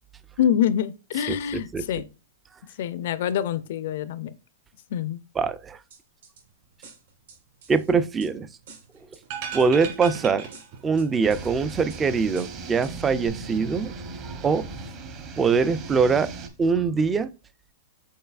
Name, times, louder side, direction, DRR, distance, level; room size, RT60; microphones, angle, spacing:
voice 1, 0.4-2.1 2.8-4.3 4.9-5.2, left 9 dB, 60° left, 0.4 m, -25 dB
voice 2, 1.3-1.9 5.4-5.8 7.7-8.5 9.5-10.5 10.8-13.9 14.4-14.7 15.4-16.3 16.6-17.3, right 5 dB, 15° right, 0.3 m, -23 dB
sound 1, 5.9-6.4 6.8-8.3 8.7-9.2 9.6-10.2 10.5-11.5 11.9-12.0 12.4-12.9 13.3-13.4, right 5 dB, 75° right, 2.0 m, -49 dB
sound 2, 9.2-11.2 11.4-11.5, right 7 dB, 50° right, 1.7 m, -36 dB
sound 3, 11.2-16.5, right 3 dB, 30° right, 0.8 m, -37 dB
5.4 x 4.0 x 2.3 m
hypercardioid pair, 155°, 0 cm